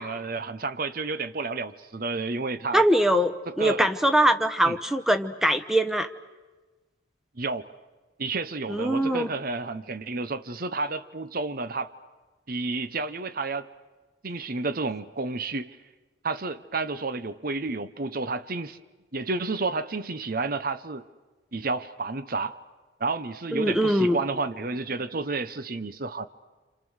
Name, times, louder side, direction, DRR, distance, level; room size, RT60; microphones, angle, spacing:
voice 1, 0.0-2.8 3.5-3.9 4.6-4.8 7.3-7.7 8.2-11.9 12.5-13.7 14.2-15.8 16.2-18.8 19.1-21.0 21.5-22.6 23.0-26.3, right 3 dB, 50° right, 13 dB, 0.9 m, -31 dB
voice 2, 2.7-6.1 8.7-9.3 23.5-24.2, right 1 dB, ahead, 8 dB, 1.0 m, -22 dB
28.5 x 27.5 x 6.4 m, 1.2 s
head